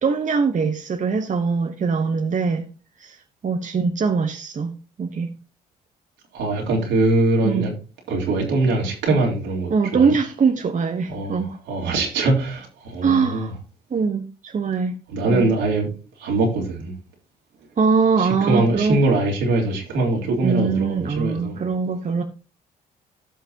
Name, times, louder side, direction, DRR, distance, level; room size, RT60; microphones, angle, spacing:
voice 1, 0.0-2.7 3.0-3.2 3.4-4.7 5.0-5.3 7.4-7.7 9.7-11.6 13.0-13.5 13.9-14.9 15.3-15.4 17.8-19.0 20.4-22.2, right 5 dB, 40° right, 1.1 m, -22 dB
voice 2, 6.3-7.7 8.1-10.1 11.1-13.5 15.1-15.9 16.2-16.9 18.2-21.6, right 2 dB, 75° right, 3.4 m, -22 dB
16.0 x 5.7 x 2.8 m
hypercardioid pair, 55°, 19 cm